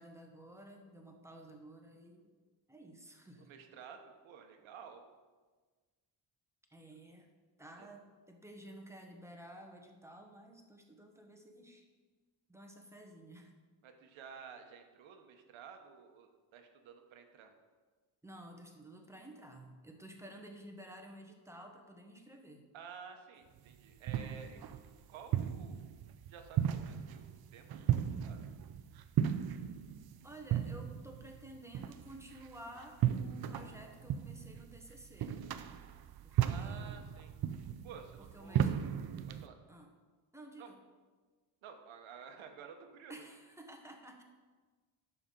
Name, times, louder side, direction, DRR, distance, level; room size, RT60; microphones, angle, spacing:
voice 1, 0.0-2.3 2.7-3.5 6.7-7.3 7.6-11.9 12.5-13.6 18.2-22.6 30.2-35.4 36.2-37.0 38.2-38.7 39.7-39.9 40.3-40.8 43.1-44.2, right 1 dB, 5° right, 2 dB, 1.1 m, -53 dB
voice 2, 3.4-5.0 7.8-7.9 13.8-17.5 22.7-24.6 25.1-25.9 26.3-28.5 36.4-37.3 37.8-38.8 39.3-39.6 40.6-40.7 41.6-43.3, right 6 dB, 90° right, 5 dB, 1.2 m, -52 dB
sound 1, 23.6-39.5, right 10 dB, 55° right, 0.6 m, -36 dB
11.0 x 6.9 x 3.9 m, 1.4 s
cardioid pair, 130°, 46 cm